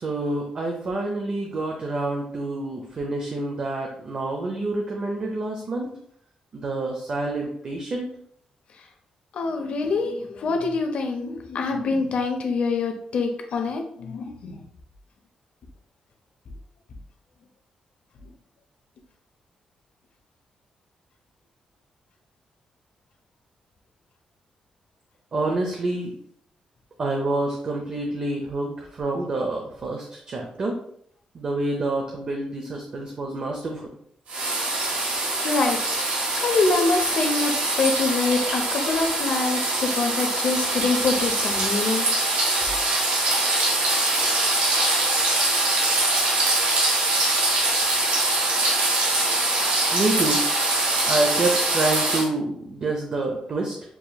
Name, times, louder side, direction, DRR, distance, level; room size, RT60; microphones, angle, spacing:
voice 1, 0.0-5.9 6.5-8.1 25.3-26.1 27.0-30.8 31.3-33.8 49.9-50.4 51.1-53.8, right 2 dB, 40° right, 1 dB, 0.6 m, -27 dB
voice 2, 9.3-14.6 35.4-36.1 36.4-42.1, left 3 dB, 60° left, 4 dB, 0.7 m, -25 dB
sound 1, 34.3-52.3, right 2 dB, 90° right, 1.4 m, -23 dB
6.9 x 2.9 x 2.3 m, 0.65 s
wide cardioid pair, 150°, 2 cm